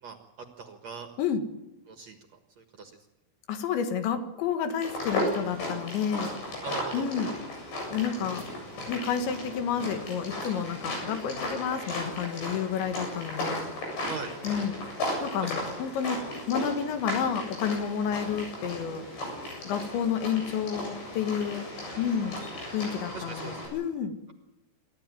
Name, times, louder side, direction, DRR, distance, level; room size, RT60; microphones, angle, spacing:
voice 1, 0.0-1.1 1.9-2.2 2.6-2.9 6.6-7.1 14.1-14.3 15.4-15.7 21.7-22.1 23.1-23.6, right 5 dB, 55° right, 5 dB, 2.0 m, -40 dB
voice 2, 3.5-6.3 6.9-7.3 7.9-8.4 8.9-13.7 14.4-14.8 15.2-16.2 16.5-19.1 19.7-21.7 22.0-22.4 22.7-24.2, left 7 dB, 90° left, 8 dB, 4.0 m, -30 dB
sound 1, 4.8-23.7, left 1 dB, 75° left, 10.0 m, -35 dB
28.0 x 13.5 x 9.3 m, 1.0 s
omnidirectional pair, 5.0 m